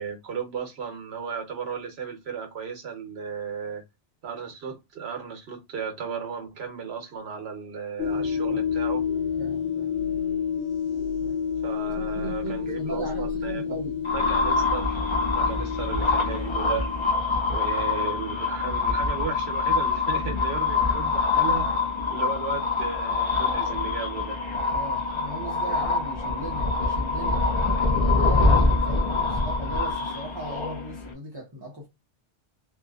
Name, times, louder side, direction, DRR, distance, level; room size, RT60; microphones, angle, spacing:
voice 1, 0.0-3.8 4.2-9.0 11.6-13.8 14.1-15.0 15.3-17.1 17.5-21.7 22.1-24.4, right 6 dB, 70° right, 1.0 m, -35 dB
sound 1, 8.0-17.1, left 7 dB, 70° left, 0.8 m, -29 dB
voice 2, 8.1-8.6 9.4-9.9 11.2-11.4 11.9-14.0 24.7-27.4 28.0-31.9, right 2 dB, 30° right, 0.5 m, -38 dB
sound 2, 14.1-31.1, left 3 dB, 40° left, 0.4 m, -25 dB
2.6 x 2.4 x 2.2 m
omnidirectional pair, 1.1 m